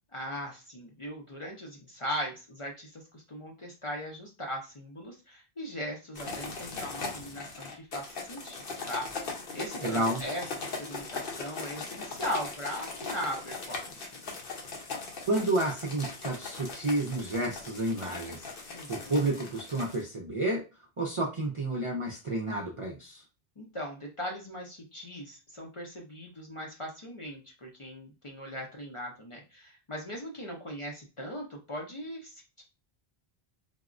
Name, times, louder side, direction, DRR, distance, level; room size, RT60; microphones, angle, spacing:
voice 1, 0.1-9.2 9.5-14.2 18.7-19.2 23.6-32.6, equal, 40° left, -1 dB, 0.5 m, -39 dB
sound 1, 6.1-20.0, left 4 dB, 60° left, 0.9 m, -39 dB
voice 2, 9.8-10.2 15.3-18.5 18.9-20.6 21.0-23.2, right 2 dB, 50° right, -2 dB, 0.4 m, -30 dB
3.5 x 2.0 x 2.4 m, 0.31 s
omnidirectional pair, 1.0 m